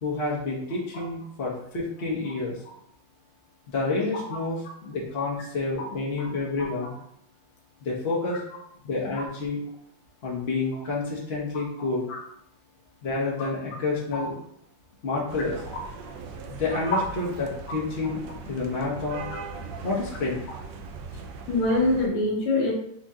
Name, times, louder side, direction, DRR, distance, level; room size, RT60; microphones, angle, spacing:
voice 1, 0.0-2.6 3.7-6.9 7.8-8.4 8.8-9.6 10.2-12.1 13.0-14.3 15.0-15.6 16.5-18.2 18.5-19.2 19.8-20.4, left 3 dB, 50° left, -5 dB, 0.7 m, -29 dB
sound 1, 15.3-22.1, right 4 dB, 75° right, 1.2 m, -39 dB
voice 2, 21.5-22.7, left 2 dB, 85° left, -2 dB, 1.9 m, -24 dB
5.0 x 2.8 x 3.6 m, 0.69 s
omnidirectional pair, 2.3 m